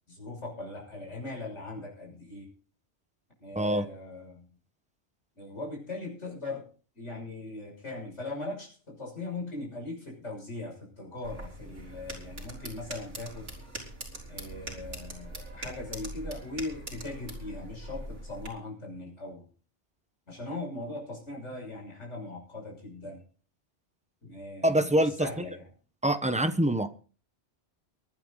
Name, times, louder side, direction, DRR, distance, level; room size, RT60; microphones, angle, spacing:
voice 1, 0.1-2.5 3.4-4.5 5.4-6.7 6.9-13.5 14.3-19.5 20.3-23.2 24.2-25.7, left 2 dB, 75° left, -2 dB, 6.8 m, -39 dB
sound 1, 11.2-18.5, right 1 dB, 80° right, 4.7 m, -42 dB
voice 2, 24.6-25.3 26.0-26.9, right 1 dB, 5° right, 9 dB, 1.0 m, -25 dB
23.5 x 9.5 x 3.9 m, 0.39 s
omnidirectional pair, 1.2 m